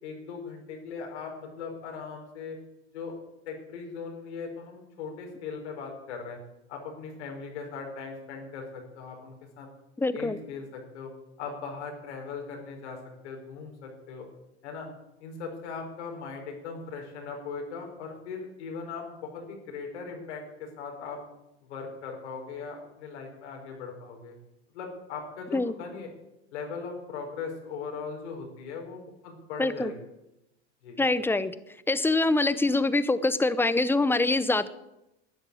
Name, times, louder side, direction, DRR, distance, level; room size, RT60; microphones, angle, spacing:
voice 1, 0.0-2.6 2.9-3.1 3.4-6.4 6.7-9.7 10.1-11.1 11.4-13.0 13.2-14.3 14.6-14.9 15.2-21.2 21.6-24.4 24.7-26.1 26.5-29.9 30.8-31.0, left 5 dB, 85° left, 2 dB, 5.0 m, -39 dB
voice 2, 10.0-10.4 25.5-25.7 29.6-29.9 31.0-31.5 31.9-34.7, left 2 dB, 5° left, 15 dB, 0.8 m, -24 dB
12.5 x 10.0 x 8.6 m, 0.92 s
supercardioid pair, 110°, 34 cm